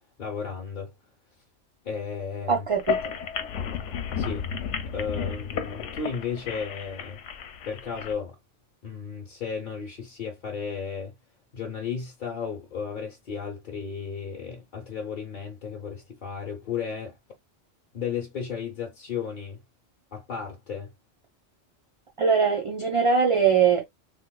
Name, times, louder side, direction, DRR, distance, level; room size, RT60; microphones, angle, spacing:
voice 1, 0.2-0.9 1.8-2.7 4.2-4.4 4.9-7.2 7.6-8.4 8.8-11.1 11.5-17.2 17.9-19.6 20.1-20.9, left 6 dB, 50° left, 0.9 m, -34 dB
voice 2, 2.5-3.1 22.2-23.9, right 6 dB, 45° right, 0.4 m, -22 dB
sound 1, 2.7-8.1, left 6 dB, 85° left, 0.9 m, -32 dB
3.4 x 2.9 x 2.2 m
omnidirectional pair, 1.2 m